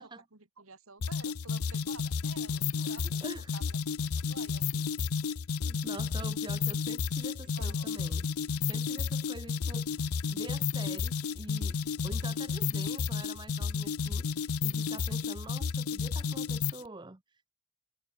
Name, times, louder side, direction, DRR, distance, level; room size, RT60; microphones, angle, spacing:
voice 1, 0.0-3.3 3.5-4.9 7.4-7.9, right 4 dB, 75° right, 2.6 m, -51 dB
sound 1, 1.0-16.9, left 5 dB, 85° left, 0.6 m, -32 dB
voice 2, 2.8-3.5 5.6-8.3 8.7-17.5, right 2 dB, 20° right, 0.8 m, -46 dB
head